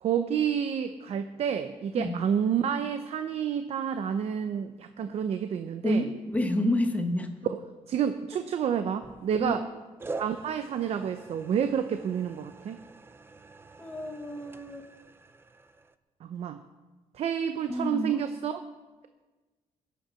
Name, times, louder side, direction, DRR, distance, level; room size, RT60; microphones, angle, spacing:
voice 1, 0.0-6.1 7.5-7.6 7.9-9.6 10.2-12.8 16.2-16.6 17.1-18.6, right 8 dB, 50° right, 9 dB, 0.7 m, -29 dB
voice 2, 5.8-7.3 9.4-9.6 13.8-14.9 17.7-18.2, left 1 dB, 10° left, 5 dB, 1.1 m, -29 dB
sound 1, 9.0-9.6 10.0-15.9, right 3 dB, 15° right, 0.5 m, -45 dB
21.0 x 8.4 x 5.8 m, 1.2 s
cardioid pair, 155°, 13 cm